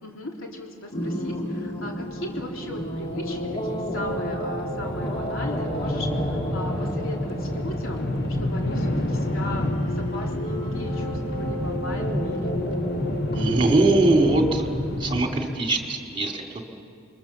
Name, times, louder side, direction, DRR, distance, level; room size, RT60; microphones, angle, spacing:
voice 1, 0.0-12.6, left 1 dB, 70° left, 0 dB, 3.6 m, -37 dB
sound 1, 0.9-14.4, equal, 25° left, 2.2 m, -32 dB
sound 2, 1.2-15.4, left 1 dB, 45° left, 1.9 m, -30 dB
voice 2, 13.3-14.7 15.0-16.6, right 2 dB, 25° right, 2 dB, 2.3 m, -21 dB
28.0 x 22.5 x 7.2 m, 2.4 s
head